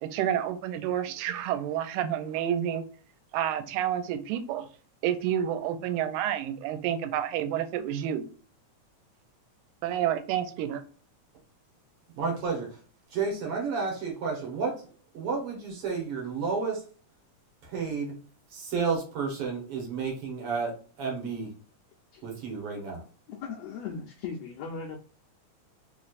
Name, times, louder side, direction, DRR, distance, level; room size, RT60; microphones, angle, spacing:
voice 1, 0.0-2.8 3.3-4.7 5.0-8.2 9.8-10.8, right 10 dB, 85° right, 9 dB, 2.0 m, -29 dB
voice 2, 12.2-12.8 13.1-14.8 15.1-16.8 17.6-18.2 18.5-21.5 22.2-23.0, right 5 dB, 60° right, 0 dB, 1.8 m, -31 dB
voice 3, 23.3-25.0, left 5 dB, 80° left, 0 dB, 1.4 m, -38 dB
4.5 x 3.1 x 2.4 m, 0.39 s
omnidirectional pair, 3.4 m